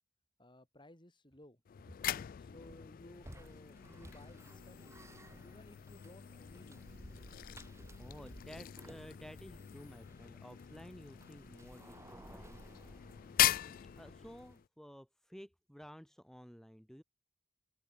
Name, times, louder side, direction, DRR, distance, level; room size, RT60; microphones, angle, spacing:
voice 1, 0.4-1.6 2.0-5.0 5.4-6.8, left 1 dB, 25° left, 5.3 m, -58 dB
sound 1, 1.6-14.7, left 13 dB, 50° left, 0.3 m, -40 dB
sound 2, 3.2-14.6, equal, 15° right, 4.3 m, -56 dB
voice 2, 8.0-12.6 13.8-17.0, equal, ahead, 2.7 m, -53 dB
head